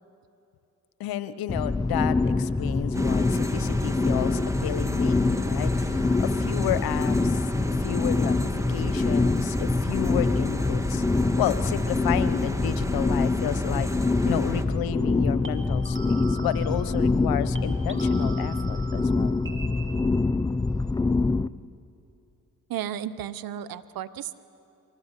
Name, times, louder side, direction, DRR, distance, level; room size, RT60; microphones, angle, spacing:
voice 1, 1.0-7.4 7.8-8.4 8.7-11.0 11.4-13.9 14.3-19.4, left 12 dB, 75° left, 14 dB, 1.0 m, -31 dB
sound 1, 1.5-21.5, left 3 dB, 10° left, 0.5 m, -25 dB
sound 2, 2.9-14.6, right 1 dB, 10° right, 1.8 m, -34 dB
sound 3, 10.5-10.8 15.4-17.3 17.5-20.4, right 4 dB, 35° right, 2.6 m, -44 dB
voice 2, 22.7-24.3, right 10 dB, 70° right, 15 dB, 0.9 m, -33 dB
24.0 x 19.0 x 8.2 m, 2.7 s
supercardioid pair, 55°, 36 cm